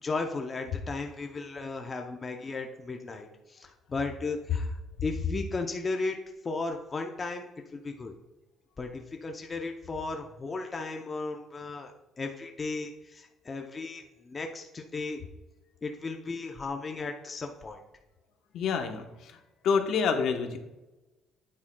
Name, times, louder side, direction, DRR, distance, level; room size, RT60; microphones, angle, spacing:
voice 1, 0.0-6.2 6.4-8.1 8.8-11.9 12.2-15.2 15.8-17.8, left 3 dB, 25° left, 3 dB, 0.6 m, -35 dB
voice 2, 18.5-19.4 19.6-20.6, left 6 dB, 60° left, 5 dB, 0.9 m, -27 dB
9.3 x 8.8 x 2.2 m, 1.0 s
cardioid pair, 145°, 0 cm